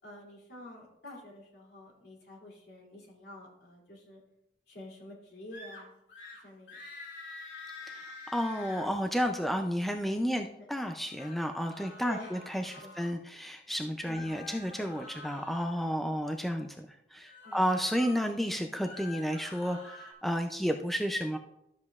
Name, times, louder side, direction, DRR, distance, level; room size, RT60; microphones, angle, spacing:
voice 1, 0.0-4.2 4.7-5.9 6.4-6.8 10.3-10.7 11.8-12.9 14.0-14.3 16.4-16.7 17.4-17.6, left 1 dB, 65° left, -3 dB, 2.7 m, -49 dB
sound 1, 5.5-5.8 6.1-6.4 6.7-8.9 11.0-13.1 14.1-15.8 17.2-18.3 18.7-20.1, left 3 dB, 85° left, 2.5 m, -47 dB
voice 2, 7.8-21.4, equal, ahead, 4 dB, 0.4 m, -32 dB
12.5 x 7.6 x 2.4 m, 0.82 s
head